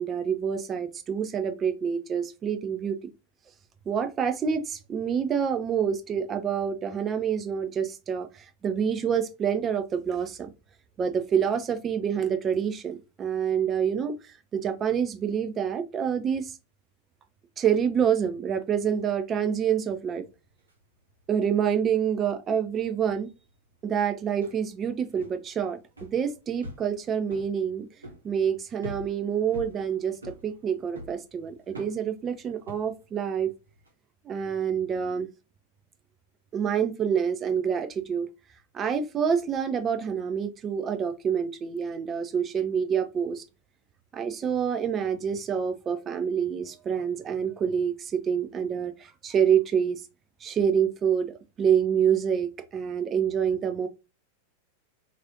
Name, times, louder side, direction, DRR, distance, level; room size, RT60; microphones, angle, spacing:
voice 1, 0.0-3.0 3.9-10.5 11.0-14.1 14.5-16.5 17.6-20.2 21.3-23.3 23.8-27.9 28.2-33.5 34.3-35.3 36.5-38.3 38.7-43.4 44.1-50.0 50.4-53.9, right 7 dB, 25° right, 0.4 m, -27 dB
sound 1, 20.3-20.7 21.0-21.4 21.9-33.9, left 1 dB, 75° right, 0.9 m, -45 dB
3.1 x 2.5 x 2.9 m
figure-of-eight pair, 90°, 0 cm